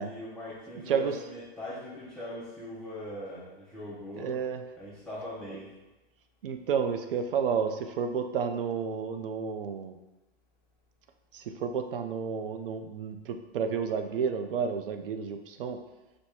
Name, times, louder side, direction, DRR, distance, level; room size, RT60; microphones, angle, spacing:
voice 1, 0.0-4.4 4.8-5.7, left 1 dB, 5° left, -9 dB, 0.3 m, -41 dB
voice 2, 0.7-1.1 4.1-4.6 6.4-10.0 11.3-15.8, right 6 dB, 60° right, 7 dB, 0.5 m, -31 dB
4.3 x 2.1 x 4.6 m, 1.1 s
hypercardioid pair, 145°, 31 cm